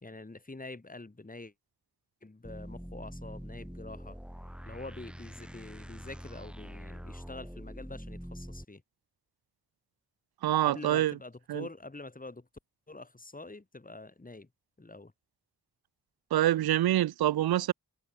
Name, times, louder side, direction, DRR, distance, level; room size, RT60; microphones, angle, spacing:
voice 1, 0.0-1.5 2.2-4.2 4.7-8.8 10.7-12.5 12.9-14.5 14.8-15.1, left 2 dB, 20° left, 1.8 m, -46 dB
sound 1, 2.4-8.6, equal, 5° right, 1.8 m, -44 dB
voice 2, 10.4-11.2 11.5-11.7 16.3-17.7, right 13 dB, 75° right, 0.5 m, -26 dB
cardioid pair, 40°, 37 cm